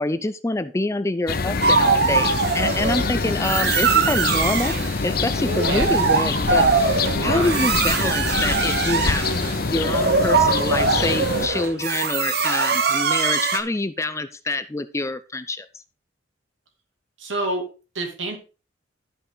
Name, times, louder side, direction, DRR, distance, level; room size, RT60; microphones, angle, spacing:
voice 1, 0.0-4.7 5.0-15.7, left 2 dB, 15° left, 13 dB, 0.5 m, -26 dB
sound 1, 1.3-11.5, left 4 dB, 50° left, 0.7 m, -25 dB
sound 2, 1.6-3.0 3.4-4.9 5.4-13.6, right 5 dB, 55° right, 1.0 m, -22 dB
sound 3, 2.7-9.7, right 1 dB, 10° right, 1.7 m, -39 dB
voice 2, 7.1-7.7 17.2-17.7 17.9-18.4, right 2 dB, 80° right, 3 dB, 2.5 m, -27 dB
12.5 x 5.6 x 3.9 m, 0.33 s
head